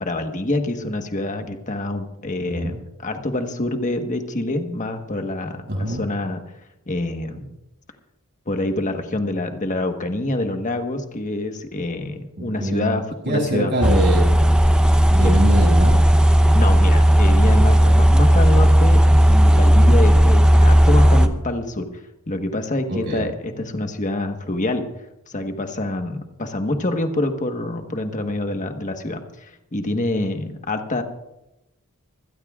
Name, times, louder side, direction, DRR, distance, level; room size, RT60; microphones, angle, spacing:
voice 1, 0.0-6.4 6.9-7.5 8.5-13.7 15.2-15.4 16.5-21.9 22.3-24.8 25.3-31.0, left 2 dB, 35° left, 5 dB, 1.4 m, -26 dB
voice 2, 2.4-2.8 5.7-6.0 12.4-13.0 13.2-14.4 15.1-16.0 22.9-23.2, right 1 dB, 50° right, -2 dB, 7.1 m, -23 dB
sound 1, 13.8-21.3, equal, 5° right, 0.8 m, -14 dB
26.0 x 16.5 x 2.5 m, 0.90 s
head